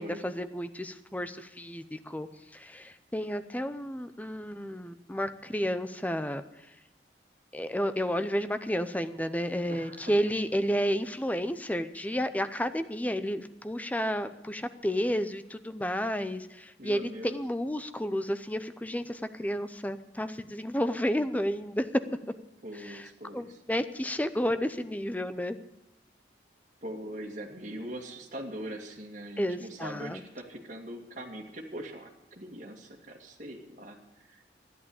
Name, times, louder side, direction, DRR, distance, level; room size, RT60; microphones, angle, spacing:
voice 1, 0.0-2.3 2.5-6.4 7.5-22.0 22.7-23.1 23.3-25.6 29.4-30.2, equal, 10° left, 11 dB, 0.6 m, -31 dB
voice 2, 9.7-10.0 16.8-17.4 22.6-23.5 26.8-34.5, right 1 dB, 45° right, 1 dB, 2.2 m, -42 dB
12.5 x 11.0 x 8.6 m, 0.93 s
head